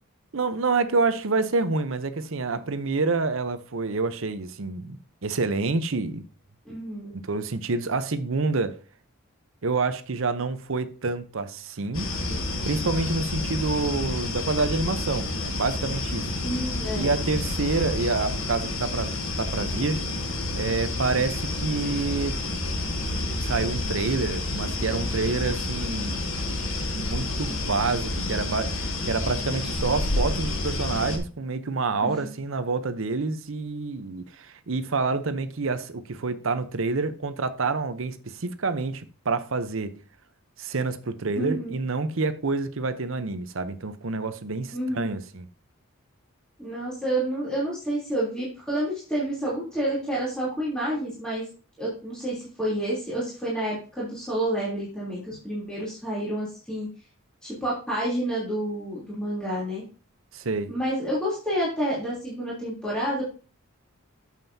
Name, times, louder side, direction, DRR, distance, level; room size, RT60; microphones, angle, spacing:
voice 1, 0.3-6.2 7.1-8.8 9.6-12.1 12.6-16.3 17.0-20.0 20.6-22.4 23.4-26.4 26.9-40.0 40.6-45.5 60.3-60.7, right 3 dB, 65° right, 0.8 m, -28 dB
voice 2, 6.6-7.1 16.4-17.2 32.0-32.3 41.4-41.8 44.7-45.0 46.6-51.5 51.8-56.9 57.4-59.8 60.7-63.2, right 1 dB, 5° left, 3.2 m, -29 dB
sound 1, 11.9-31.2, left 2 dB, 65° left, 1.7 m, -29 dB
9.0 x 7.5 x 2.7 m
head